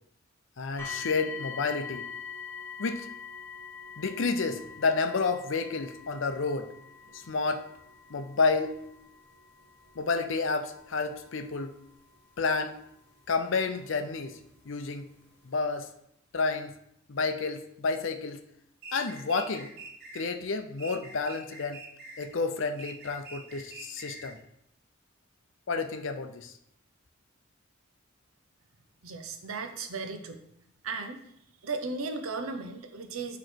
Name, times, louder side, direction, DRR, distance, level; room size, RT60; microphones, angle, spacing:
voice 1, 0.6-2.1 2.8-3.1 4.0-6.7 7.1-7.7 8.1-8.7 10.0-11.8 12.4-12.8 13.3-14.4 14.7-15.1 15.4-15.9 16.3-16.7 17.1-18.4 18.9-19.7 20.1-21.8 22.2-24.4 25.7-26.5, left 4 dB, 65° left, 8 dB, 0.6 m, -30 dB
sound 1, 0.8-13.7 14.5-14.6 15.2-15.3, left 6 dB, 10° left, 1.3 m, -44 dB
sound 2, 18.8-20.3 20.8-22.3 22.8-24.4, right 3 dB, 50° right, 1.2 m, -45 dB
voice 2, 29.0-30.4 30.8-31.2 31.6-33.4, right 4 dB, 90° right, 6 dB, 0.8 m, -35 dB
8.8 x 3.1 x 4.5 m, 0.75 s
head